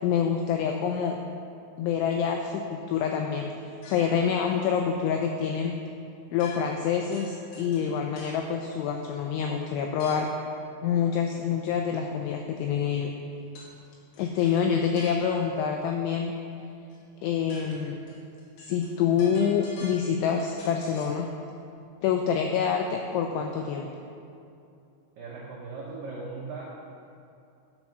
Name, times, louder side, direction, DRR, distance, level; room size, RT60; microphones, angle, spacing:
voice 1, 0.0-1.2 1.8-3.5 3.9-5.8 6.3-10.3 10.8-13.2 14.2-16.3 17.2-18.0 18.6-21.3 22.0-23.9, left 7 dB, 90° left, 3 dB, 2.7 m, -26 dB
sound 1, 3.8-4.3 6.4-6.9 7.1-8.5 10.0-10.4 13.6-13.8 14.1-15.6 16.9-17.0 17.3-21.2, left 2 dB, 70° left, 4.1 m, -47 dB
voice 2, 25.2-26.6, right 3 dB, 85° right, -7 dB, 1.9 m, -38 dB
11.5 x 5.4 x 6.0 m, 2.6 s
omnidirectional pair, 6.0 m